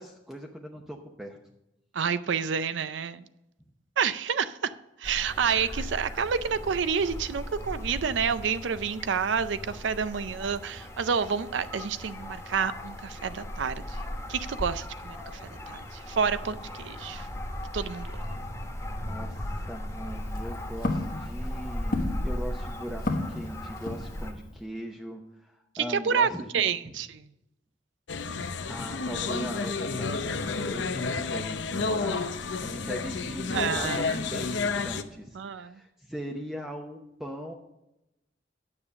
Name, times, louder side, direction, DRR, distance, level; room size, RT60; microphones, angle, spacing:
voice 1, 0.0-1.4 19.0-27.0 28.4-32.3 32.6-37.5, equal, ahead, 1 dB, 0.8 m, -40 dB
voice 2, 1.9-3.3 4.0-14.0 14.3-17.3 17.7-18.3 25.7-26.3 26.5-27.3 33.5-34.4 35.3-35.8, right 6 dB, 70° right, 14 dB, 0.5 m, -29 dB
sound 1, 5.0-24.3, left 1 dB, 15° left, 1.4 m, -37 dB
Walk footsteps, 20.0-24.5, left 2 dB, 55° left, 1.4 m, -34 dB
sound 2, 28.1-35.0, left 4 dB, 70° left, 0.7 m, -31 dB
9.7 x 6.9 x 6.8 m, 0.91 s
head